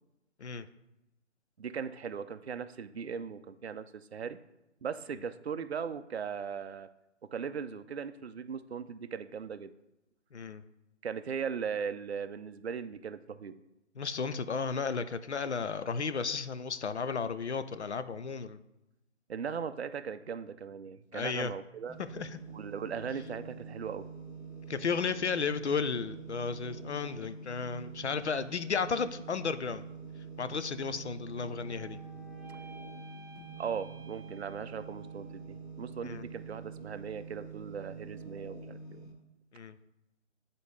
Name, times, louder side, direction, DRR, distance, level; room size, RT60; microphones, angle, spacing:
voice 1, 1.6-4.4 4.8-6.9 7.3-9.7 11.0-13.6 19.3-22.0 22.5-24.1 33.6-39.1, right 6 dB, 60° right, 11 dB, 0.5 m, -38 dB
voice 2, 10.3-10.6 14.0-18.6 21.1-21.5 22.1-22.3 24.7-29.9 30.4-32.0 36.0-36.2 39.5-39.8, left 5 dB, 65° left, 12 dB, 0.5 m, -33 dB
sound 1, 21.9-39.1, right 5 dB, 15° left, 1.4 m, -46 dB
sound 2, 31.2-35.5, right 3 dB, 15° right, 0.9 m, -54 dB
9.2 x 4.1 x 3.2 m, 0.92 s
figure-of-eight pair, 170°, 37 cm